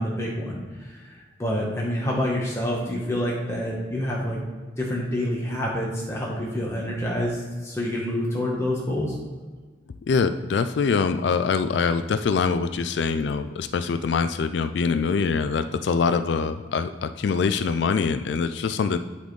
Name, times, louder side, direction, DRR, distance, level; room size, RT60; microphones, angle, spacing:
voice 1, 0.0-4.4 4.8-9.1, left 1 dB, 15° left, -4 dB, 1.1 m, -27 dB
voice 2, 10.1-19.0, left 5 dB, 70° left, 10 dB, 0.3 m, -24 dB
11.5 x 4.2 x 3.2 m, 1.4 s
head